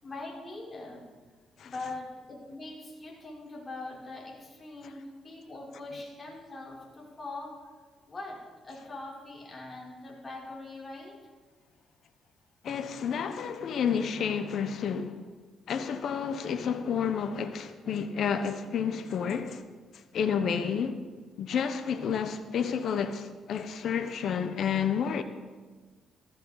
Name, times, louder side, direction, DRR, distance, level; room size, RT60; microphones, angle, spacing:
voice 1, 0.0-1.1 1.6-7.6 8.1-11.2, left 2 dB, 30° left, 4.2 m, -42 dB
voice 2, 12.6-15.2 15.7-19.6 20.1-21.0 21.4-25.2, left 7 dB, 65° left, 1.0 m, -30 dB
14.5 x 14.0 x 4.1 m
cardioid pair, 90°, 0 cm